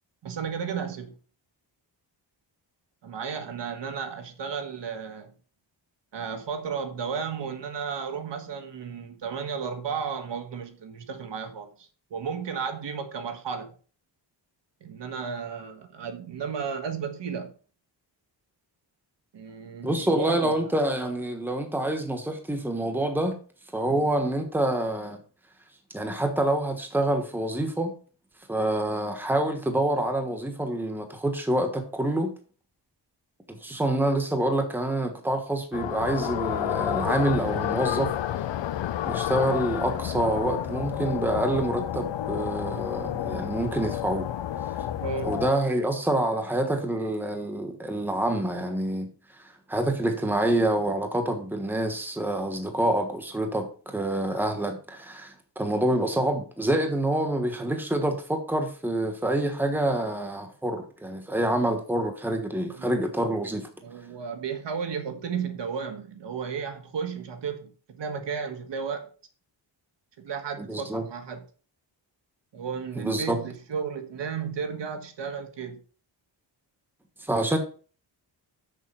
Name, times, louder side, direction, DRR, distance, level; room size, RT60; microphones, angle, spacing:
voice 1, 0.2-1.2 3.0-5.3 6.1-13.7 14.8-17.5 19.3-20.7 23.8-24.0 45.0-45.4 62.7-62.9 63.8-69.1 70.2-71.4 72.5-75.8, right 6 dB, 65° right, 1.6 m, -33 dB
voice 2, 19.8-23.4 23.7-25.2 25.9-27.9 28.5-32.3 33.5-38.1 39.1-44.3 45.2-49.1 49.4-49.5 49.7-63.7 70.6-71.0 73.0-73.4 77.2-77.6, right 1 dB, 5° right, 1.3 m, -27 dB
sound 1, 35.7-45.5, left 11 dB, 70° left, 0.7 m, -30 dB
6.7 x 6.5 x 5.6 m
wide cardioid pair, 170°, 45 cm